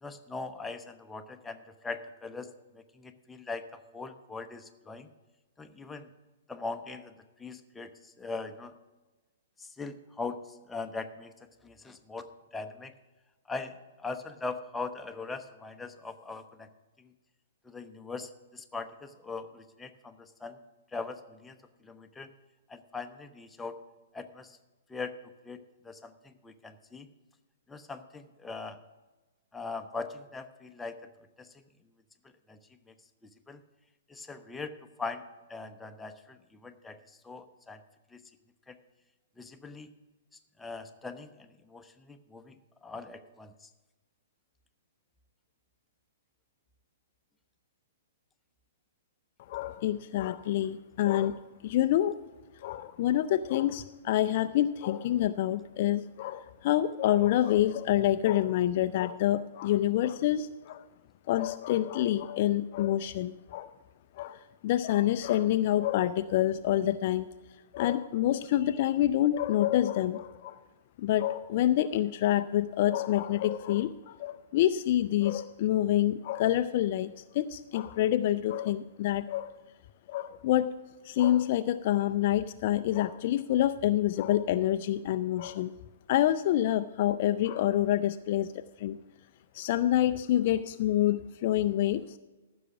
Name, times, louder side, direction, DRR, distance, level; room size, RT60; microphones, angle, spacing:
voice 1, 0.0-5.1 5.6-6.1 6.5-7.1 7.4-8.7 9.6-10.4 10.7-11.3 11.6-12.9 13.5-16.7 17.0-17.1 17.6-20.6 20.9-21.6 21.8-22.3 22.7-23.8 24.1-24.6 24.9-25.1 25.4-27.1 27.7-28.8 29.5-31.0 31.4-31.5 32.5-32.6 32.9-33.0 33.5-33.6 34.1-34.7 35.0-35.2 35.5-37.0 37.2-37.8 38.1-38.2 38.7-38.8 39.4-39.9 40.6-43.7, left 3 dB, 10° left, 6 dB, 0.7 m, -41 dB
voice 2, 49.5-52.2 52.6-60.9 61.3-63.7 64.2-67.3 67.7-70.6 71.0-79.5 80.1-80.7 81.0-85.7 86.1-89.0 89.5-92.0, left 12 dB, 45° left, 11 dB, 0.4 m, -27 dB
14.5 x 6.2 x 5.9 m, 1.2 s
figure-of-eight pair, 115°, 0 cm